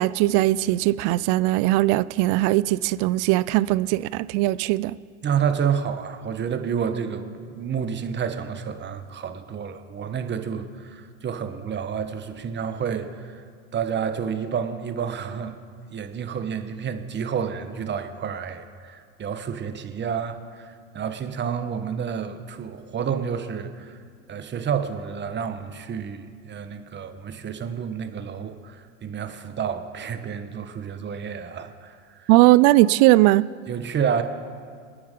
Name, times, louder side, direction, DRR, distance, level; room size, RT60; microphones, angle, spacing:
voice 1, 0.0-5.0 32.3-33.4, right 18 dB, 50° right, 19 dB, 0.5 m, -19 dB
voice 2, 5.2-13.4 13.7-15.6 15.9-24.0 24.3-28.8 29.0-32.3 33.7-34.2, right 7 dB, 30° right, 9 dB, 1.2 m, -29 dB
26.0 x 9.6 x 3.8 m, 2.1 s
hypercardioid pair, 90°, 38 cm